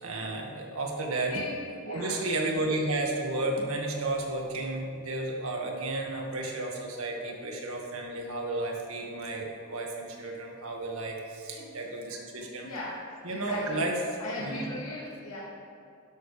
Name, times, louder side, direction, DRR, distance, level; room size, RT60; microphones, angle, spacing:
voice 1, 0.0-1.3 1.9-12.7 13.2-14.0 14.4-14.6, right 2 dB, 75° right, 0 dB, 1.9 m, -32 dB
voice 2, 1.8-2.2 11.5-11.6 12.3-13.0 13.3-13.8 14.2-15.4, left 1 dB, 80° left, -8 dB, 2.3 m, -38 dB
12.0 x 12.0 x 3.4 m, 2.6 s
head